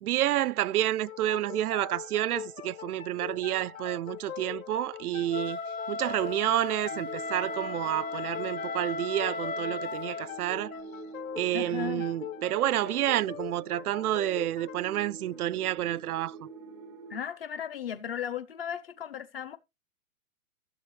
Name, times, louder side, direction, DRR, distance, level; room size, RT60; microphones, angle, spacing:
voice 1, 0.0-5.6 5.9-10.8 11.4-16.4, right 13 dB, 85° right, 0.6 m, -29 dB
sound 1, 1.1-16.4, left 10 dB, 70° left, 1.2 m, -43 dB
Wind instrument woodwind instrument, 5.3-10.3, left 3 dB, 15° left, 0.7 m, -36 dB
sound 2, 6.9-17.2, right 4 dB, 20° right, 0.5 m, -47 dB
voice 2, 11.5-12.0 17.1-19.6, left 9 dB, 40° left, 0.9 m, -36 dB
15.0 x 7.6 x 3.2 m
hypercardioid pair, 170°, 43 cm